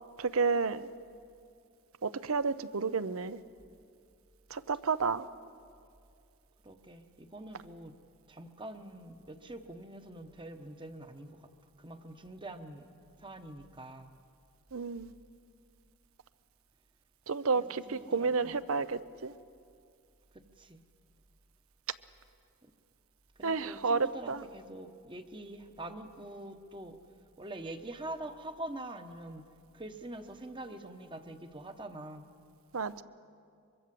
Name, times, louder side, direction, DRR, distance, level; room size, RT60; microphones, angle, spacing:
voice 1, 0.2-0.9 2.0-3.4 4.5-5.3 14.7-15.1 17.3-19.3 23.4-24.4 32.7-33.0, right 4 dB, 70° right, 15 dB, 0.7 m, -31 dB
voice 2, 6.6-7.9 8.3-11.5 11.8-12.9 13.2-14.1 17.5-18.6 20.3-20.8 22.6-22.7 23.4-27.0 27.4-29.4 29.7-32.3, right 1 dB, 20° right, 7 dB, 1.1 m, -45 dB
24.0 x 23.5 x 7.6 m, 2.4 s
head